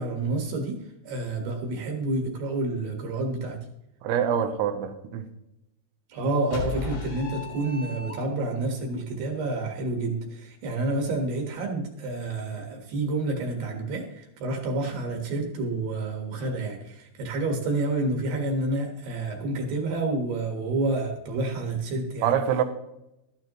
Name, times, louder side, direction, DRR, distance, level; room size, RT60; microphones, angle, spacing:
voice 1, 0.0-3.6 6.1-22.3, right 2 dB, 65° right, 2 dB, 3.1 m, -29 dB
voice 2, 4.0-5.3 22.2-22.6, right 8 dB, 80° right, 8 dB, 3.0 m, -25 dB
sound 1, 6.5-8.6, left 5 dB, 90° left, 5.3 m, -35 dB
13.0 x 12.0 x 3.1 m, 0.88 s
omnidirectional pair, 5.6 m